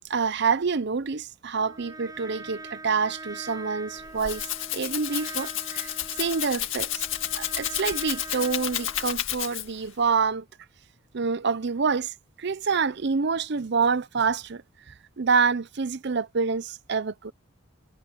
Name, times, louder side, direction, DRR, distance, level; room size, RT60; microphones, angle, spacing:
voice 1, 0.1-4.5 4.7-5.9 6.2-7.1 7.4-10.4 11.1-14.6 14.9-17.3, right 5 dB, 55° right, 0.6 m, -27 dB
Trumpet, 1.6-9.2, right 2 dB, 20° right, 7.6 m, -43 dB
Rattle (instrument), 3.9-9.9, left 12 dB, 70° left, 2.2 m, -31 dB
head